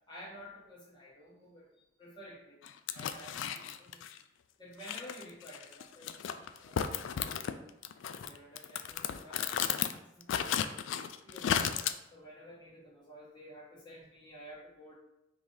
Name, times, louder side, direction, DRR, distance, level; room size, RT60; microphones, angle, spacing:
voice 1, 0.1-1.7 2.0-2.6 2.9-4.0 4.6-7.4 8.1-10.6 11.2-11.7 12.1-14.9, equal, 25° left, -5 dB, 1.2 m, -52 dB
sound 1, 2.6-4.2 4.8-7.5 7.8-9.9 10.2-11.9, left 8 dB, 75° left, 0.3 m, -34 dB
4.8 x 2.6 x 3.7 m, 0.89 s
head